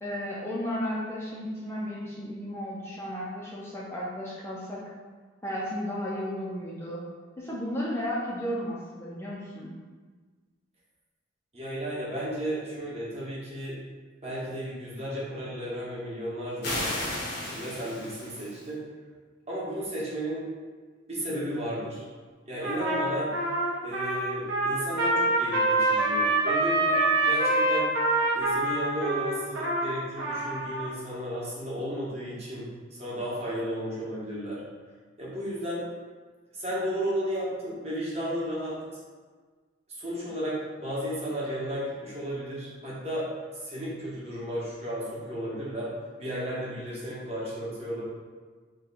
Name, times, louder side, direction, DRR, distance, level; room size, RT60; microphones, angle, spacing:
voice 1, 0.0-4.8 5.4-7.0 7.4-9.7, equal, 15° left, -6 dB, 0.4 m, -34 dB
voice 2, 11.5-13.8 14.2-17.1 17.4-18.8 19.5-20.4 21.1-22.0 22.5-23.3 23.8-27.9 28.3-34.6 35.2-35.8 36.5-38.8 39.9-43.3 43.5-45.9 46.2-48.0, equal, 35° right, -7 dB, 0.9 m, -34 dB
sound 1, 16.6-18.7, left 1 dB, 55° left, 0.7 m, -34 dB
Trumpet, 22.6-30.9, right 2 dB, 65° right, 0.8 m, -26 dB
2.8 x 2.2 x 3.9 m, 1.4 s
head